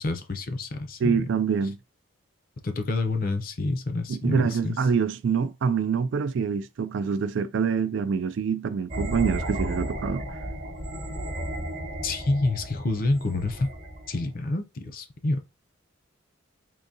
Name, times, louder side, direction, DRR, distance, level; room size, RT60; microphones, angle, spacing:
voice 1, 0.0-1.3 2.6-4.8 12.0-13.7 14.1-15.4, left 2 dB, 45° left, 0.6 m, -28 dB
voice 2, 1.0-1.8 4.1-10.2, right 6 dB, 60° right, 0.3 m, -25 dB
sound 1, 8.9-14.3, right 1 dB, 40° right, 0.8 m, -34 dB
3.7 x 2.7 x 2.7 m
head